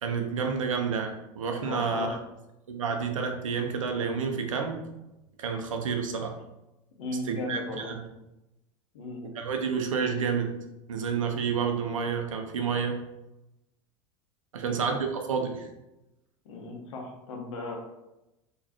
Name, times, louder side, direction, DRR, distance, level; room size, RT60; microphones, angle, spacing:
voice 1, 0.0-2.2 2.7-4.8 5.4-6.4 7.3-8.0 9.3-10.6 10.9-13.0 14.5-15.7, right 6 dB, 85° right, 4 dB, 0.7 m, -29 dB
voice 2, 1.6-2.2 7.0-7.9 8.9-9.2 14.6-14.8 16.4-17.8, left 2 dB, 70° left, 1 dB, 1.1 m, -36 dB
3.9 x 3.1 x 2.9 m, 0.93 s
hypercardioid pair, 85°, 16 cm